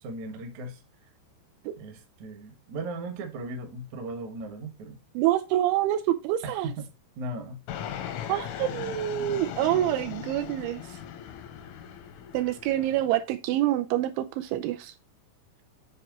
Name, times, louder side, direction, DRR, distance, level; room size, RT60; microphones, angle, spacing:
voice 1, 0.0-0.8 1.8-5.0 6.4-6.9 7.2-7.6, right 2 dB, 60° right, 2.0 m, -37 dB
voice 2, 5.2-6.7 8.3-10.8 12.3-14.9, right 13 dB, 85° right, 2.9 m, -26 dB
Fixed-wing aircraft airplane, 7.7-13.1, left 9 dB, 90° left, 3.6 m, -38 dB
9.9 x 4.5 x 3.0 m
omnidirectional pair, 5.6 m